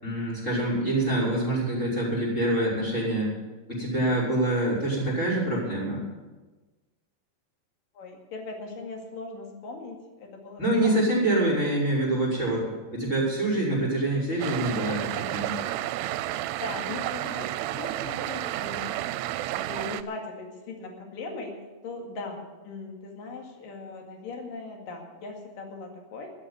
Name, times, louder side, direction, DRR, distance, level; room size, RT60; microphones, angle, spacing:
voice 1, 0.0-3.3 3.7-6.0 10.6-12.7 12.9-15.5, right 1 dB, 15° left, -5 dB, 5.8 m, -25 dB
voice 2, 8.0-11.0 16.6-18.9 19.5-21.6 21.8-26.3, left 3 dB, 60° left, 2 dB, 3.6 m, -39 dB
sound 1, 14.4-20.0, right 14 dB, 85° right, 2.7 m, -31 dB
13.0 x 8.5 x 9.6 m, 1.2 s
omnidirectional pair, 4.7 m